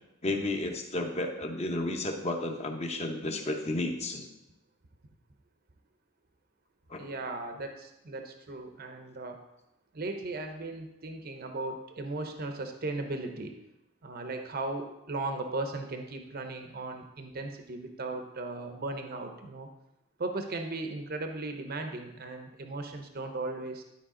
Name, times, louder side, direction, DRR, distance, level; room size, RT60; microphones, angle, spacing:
voice 1, 0.2-4.3 6.9-7.1, left 2 dB, 30° left, 4 dB, 0.8 m, -32 dB
voice 2, 7.0-9.4 9.9-13.5 14.0-19.7 20.2-23.8, right 2 dB, 45° right, 5 dB, 0.7 m, -37 dB
11.5 x 4.7 x 3.7 m, 0.90 s
head